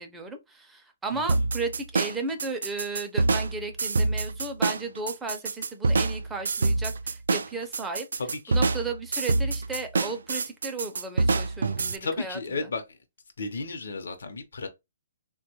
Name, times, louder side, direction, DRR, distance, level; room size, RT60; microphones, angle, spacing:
voice 1, 0.0-8.1 8.5-12.7, right 3 dB, 5° right, 0.5 m, -35 dB
sound 1, 1.3-12.0, right 3 dB, 85° right, 0.3 m, -26 dB
voice 2, 12.0-12.8 13.4-14.7, left 3 dB, 80° left, 0.8 m, -33 dB
3.4 x 2.2 x 2.9 m
hypercardioid pair, 160°, 0 cm